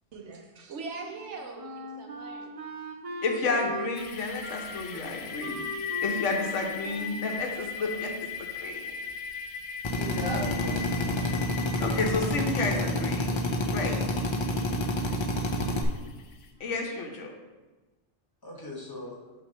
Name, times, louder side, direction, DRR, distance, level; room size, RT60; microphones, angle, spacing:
voice 1, 0.1-2.5, right 4 dB, 70° right, 2 dB, 1.1 m, -41 dB
Wind instrument woodwind instrument, 1.1-8.4, right 1 dB, 45° right, 0.5 m, -40 dB
voice 2, 3.2-5.6 6.0-8.9 11.8-13.4 13.7-13.9 16.6-17.3, left 3 dB, 80° left, 3 dB, 1.2 m, -31 dB
sound 1, 4.0-16.5, left 6 dB, 65° left, 0.8 m, -39 dB
Drill, 9.8-15.8, left 1 dB, 40° left, 0.4 m, -28 dB
voice 3, 9.9-11.3 16.6-16.7 18.4-19.2, left 1 dB, 20° left, -3 dB, 1.1 m, -38 dB
5.8 x 3.4 x 5.4 m, 1.2 s
omnidirectional pair, 1.2 m